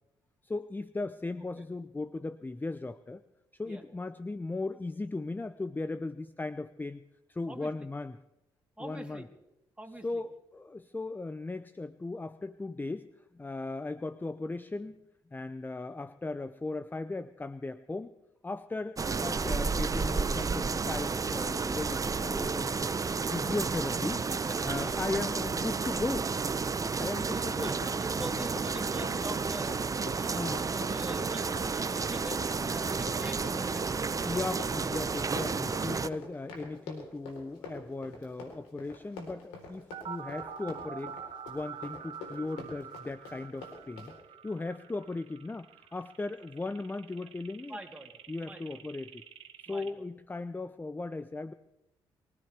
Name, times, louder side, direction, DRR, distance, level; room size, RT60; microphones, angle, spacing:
voice 1, 0.4-3.2 3.5-7.0 7.3-8.2 8.8-9.3 10.0-13.1 13.3-15.0 15.3-18.1 18.4-22.9 23.3-24.2 24.6-26.3 27.0-27.7 28.3-28.4 30.3-30.7 34.2-41.2 41.5-44.1 44.4-47.8 48.3-49.2 49.7-51.5, left 3 dB, 20° left, 13 dB, 0.7 m, -37 dB
voice 2, 8.8-9.3 9.8-10.2 24.2-25.0 27.3-29.8 30.1-34.4 47.2-47.3 47.7-48.1 48.4-48.8 49.7-49.9, right 1 dB, 10° right, 1 dB, 3.4 m, -45 dB
sound 1, 19.0-36.1, right 4 dB, 30° right, 0.7 m, -31 dB
Run, 27.7-44.2, left 4 dB, 85° left, 4.0 m, -46 dB
sound 2, 39.9-49.9, right 7 dB, 65° right, 1.5 m, -46 dB
23.5 x 16.5 x 3.5 m, 0.94 s
hypercardioid pair, 50°, 11 cm